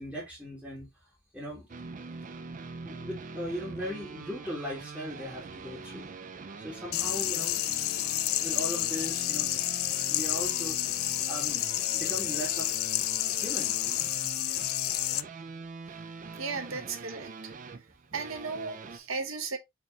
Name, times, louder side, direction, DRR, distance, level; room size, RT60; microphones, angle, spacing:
voice 1, 0.0-1.7 2.8-6.1 6.6-7.8 8.4-9.7 10.1-10.9 11.3-12.7 13.3-13.8, equal, 5° right, 1.8 m, -39 dB
sound 1, 1.7-19.0, right 4 dB, 40° right, 0.4 m, -43 dB
sound 2, 6.9-15.2, left 15 dB, 85° left, 0.4 m, -30 dB
voice 2, 16.4-17.3 18.1-19.6, right 4 dB, 80° right, 1.0 m, -35 dB
4.8 x 3.3 x 2.9 m
head